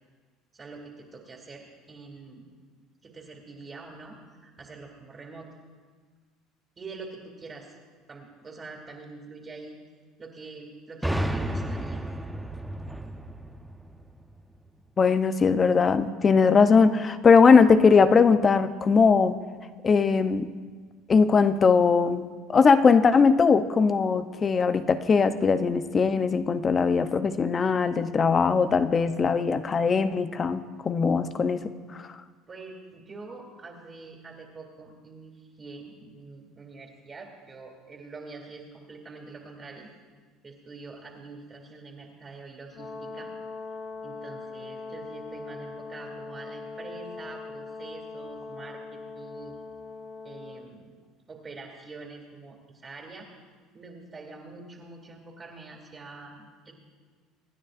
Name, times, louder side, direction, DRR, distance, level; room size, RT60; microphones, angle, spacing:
voice 1, 0.5-2.4 3.0-4.2 4.4-5.5 6.8-7.7 8.1-9.8 10.2-12.0 32.5-39.9 40.4-43.3 44.0-49.5 50.2-50.9 51.3-53.3 53.7-56.7, right 3 dB, 30° right, 0 dB, 2.6 m, -45 dB
sound 1, 11.0-14.7, right 1 dB, 5° right, 0.8 m, -32 dB
voice 2, 15.0-19.4 19.8-20.5 21.1-31.6 31.9-32.1, left 5 dB, 35° left, 11 dB, 0.7 m, -20 dB
Brass instrument, 42.7-50.7, left 4 dB, 55° left, 1.4 m, -41 dB
26.0 x 9.8 x 2.6 m, 1.5 s
supercardioid pair, 85°, 0 cm